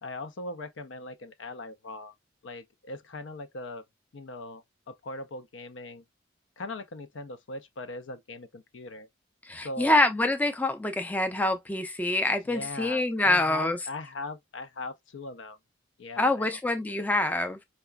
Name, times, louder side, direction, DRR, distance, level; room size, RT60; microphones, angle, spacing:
voice 1, 0.0-2.1 2.4-3.8 4.1-6.0 6.6-9.1 9.6-10.0 12.5-15.6 16.0-16.5, left 2 dB, 85° left, 0.6 m, -40 dB
voice 2, 9.5-13.8 16.2-17.6, left 2 dB, 10° left, 0.4 m, -26 dB
4.7 x 2.2 x 2.2 m
head